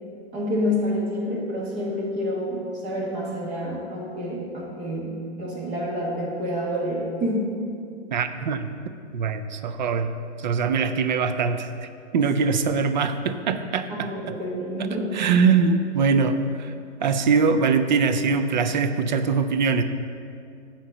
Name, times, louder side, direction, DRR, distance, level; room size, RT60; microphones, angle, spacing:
voice 1, 0.3-7.5 13.9-15.2, equal, 20° right, -3 dB, 1.5 m, -28 dB
voice 2, 8.1-8.7 9.1-10.1 10.4-11.7 12.1-14.4 15.1-16.7 17.0-19.8, right 5 dB, 40° right, 9 dB, 0.4 m, -22 dB
8.2 x 4.3 x 6.2 m, 2.4 s
hypercardioid pair, 150°, 36 cm